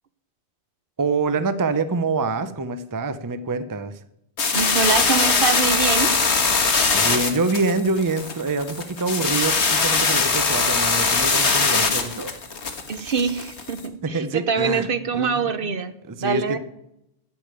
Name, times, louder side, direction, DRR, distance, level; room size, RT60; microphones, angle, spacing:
voice 1, 1.0-4.0 6.9-12.3 14.0-14.9 15.1-15.5 16.1-16.6, right 3 dB, 20° right, 12 dB, 0.6 m, -25 dB
sound 1, 4.4-13.8, left 4 dB, 85° left, 1.8 m, -21 dB
voice 2, 4.5-6.1 12.9-15.9 16.2-16.6, right 5 dB, 60° right, 12 dB, 1.0 m, -24 dB
15.0 x 5.2 x 9.0 m, 0.80 s
omnidirectional pair, 1.1 m